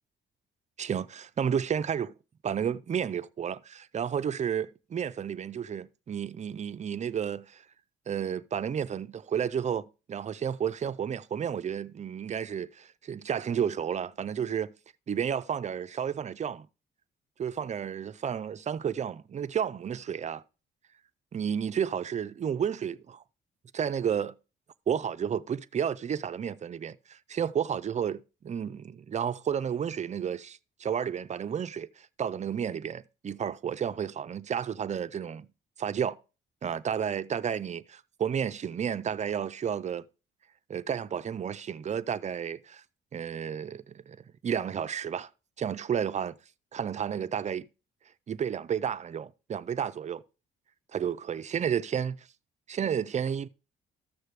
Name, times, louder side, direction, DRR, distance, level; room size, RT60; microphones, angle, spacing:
voice 1, 0.8-2.1 2.4-7.6 8.1-14.7 15.1-16.7 17.4-20.4 21.3-23.2 23.7-24.4 24.9-35.5 35.8-36.2 36.6-40.1 40.7-42.8 43.1-45.3 45.6-46.4 46.7-47.7 48.3-50.2 50.9-52.2 52.7-53.5, right 8 dB, 35° right, 0.5 m, -32 dB
13.5 x 6.5 x 3.3 m
cardioid pair, 90°, 20 cm